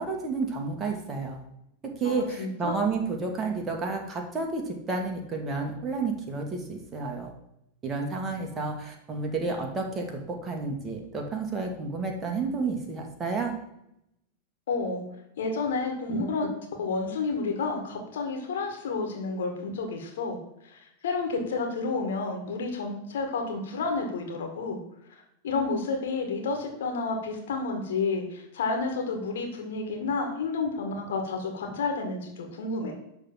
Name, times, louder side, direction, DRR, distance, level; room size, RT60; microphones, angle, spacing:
voice 1, 0.0-1.4 2.0-7.3 7.8-13.5, right 4 dB, 20° right, 2 dB, 2.1 m, -31 dB
voice 2, 2.1-2.8 14.7-15.0 15.4-16.5 16.8-20.4 20.7-24.8 25.4-32.9, left 3 dB, 60° left, 3 dB, 2.0 m, -30 dB
11.5 x 3.9 x 7.3 m, 0.80 s
figure-of-eight pair, 90°, 0 cm